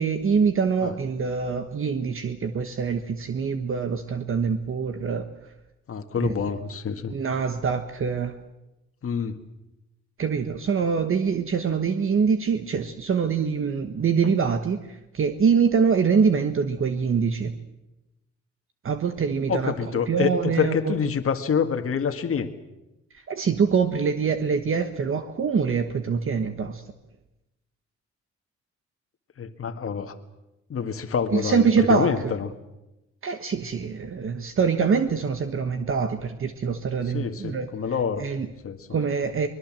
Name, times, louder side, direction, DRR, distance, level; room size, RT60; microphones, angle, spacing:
voice 1, 0.0-5.3 6.2-6.3 7.1-8.3 10.2-14.8 15.1-17.5 18.8-19.7 20.1-20.9 23.3-26.8 31.3-32.3 33.2-37.7 38.2-38.5 38.9-39.5, right 6 dB, 45° right, 8 dB, 1.4 m, -24 dB
voice 2, 5.9-7.1 9.0-9.4 19.5-22.5 29.4-30.1 30.7-32.5 37.0-38.2 38.6-38.9, left 6 dB, 50° left, 6 dB, 1.8 m, -27 dB
24.0 x 21.0 x 7.6 m, 0.97 s
cardioid pair, 110°, 29 cm